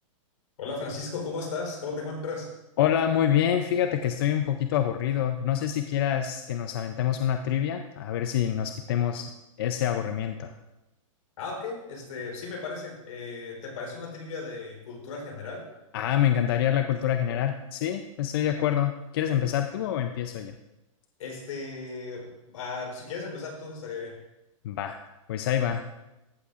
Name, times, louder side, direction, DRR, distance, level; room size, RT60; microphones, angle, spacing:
voice 1, 0.6-2.5 11.4-15.7 21.2-24.2, left 4 dB, 75° left, 0 dB, 3.7 m, -36 dB
voice 2, 2.8-9.3 9.6-10.5 15.9-20.5 24.6-25.0 25.3-25.8, left 10 dB, 45° left, 7 dB, 0.5 m, -26 dB
14.5 x 8.3 x 2.5 m, 0.97 s
supercardioid pair, 165°, 17 cm